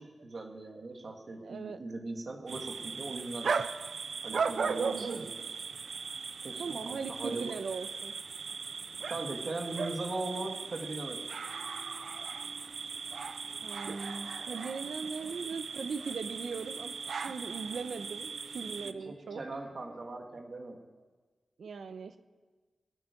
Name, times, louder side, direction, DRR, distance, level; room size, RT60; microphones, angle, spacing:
voice 1, 0.0-3.5 4.2-5.4 6.4-7.5 9.1-11.2 18.8-20.8, right 2 dB, 50° right, 3 dB, 2.4 m, -39 dB
voice 2, 1.3-1.8 4.8-5.4 6.6-8.1 13.6-19.4 21.6-22.2, right 5 dB, 90° right, 9 dB, 1.0 m, -40 dB
sound 1, 2.5-18.9, right 5 dB, 70° right, 0.6 m, -38 dB
sound 2, 5.7-20.2, left 1 dB, 65° left, 3.6 m, -58 dB
24.0 x 9.5 x 5.4 m, 1.3 s
wide cardioid pair, 125°, 0 cm